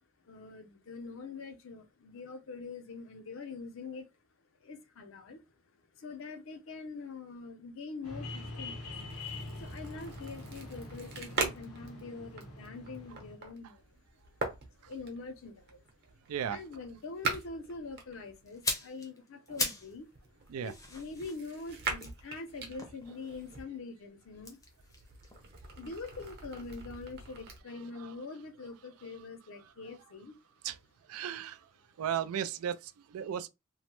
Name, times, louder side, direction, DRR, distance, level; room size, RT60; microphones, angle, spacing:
voice 1, 0.2-4.1 4.6-5.4 6.0-8.9 9.6-14.0 14.8-15.8 16.5-20.1 20.6-24.6 25.8-30.4, left 4 dB, 65° left, 0.5 m, -44 dB
sound 1, 8.0-13.3, left 2 dB, 90° left, 0.9 m, -44 dB
sound 2, 8.8-18.7 19.5-23.6 24.2-27.6, right 4 dB, 50° right, 0.8 m, -42 dB
voice 2, 16.3-16.6 20.5-20.7 27.9-28.1 30.6-30.8 31.1-31.7 32.0-33.5, right 9 dB, 85° right, 0.3 m, -35 dB
sound 3, 18.5-20.0 20.3-23.5 24.3-26.4 26.7-26.8, left 2 dB, 15° left, 0.6 m, -40 dB
3.0 x 2.0 x 2.9 m
head